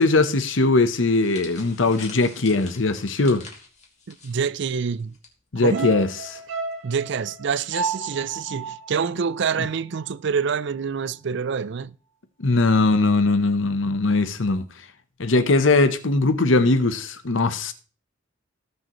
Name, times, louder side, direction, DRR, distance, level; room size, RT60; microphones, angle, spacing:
voice 1, 0.0-3.5 5.5-6.1 12.4-14.7 15.2-17.7, left 3 dB, 70° left, 1.0 m, -20 dB
sound 1, 1.0-5.3 5.6-5.8 6.7-7.0, left 4 dB, 40° left, 2.5 m, -45 dB
voice 2, 4.1-5.2 5.6-5.9 6.8-11.9, right 6 dB, 65° right, 0.5 m, -26 dB
sound 2, 5.7-10.1 10.4-10.5, right 4 dB, 90° right, 1.5 m, -33 dB
18.0 x 6.5 x 3.1 m
head